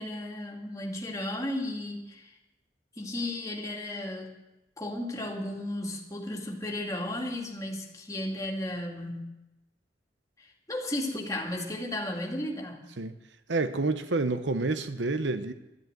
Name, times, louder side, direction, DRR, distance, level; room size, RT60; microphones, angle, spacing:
voice 1, 0.0-2.3 3.0-4.3 4.8-9.3 10.4-12.8, left 1 dB, 20° left, 2.4 m, -34 dB
voice 2, 13.5-15.5, right 3 dB, 85° right, 0.9 m, -28 dB
12.5 x 11.0 x 9.1 m
head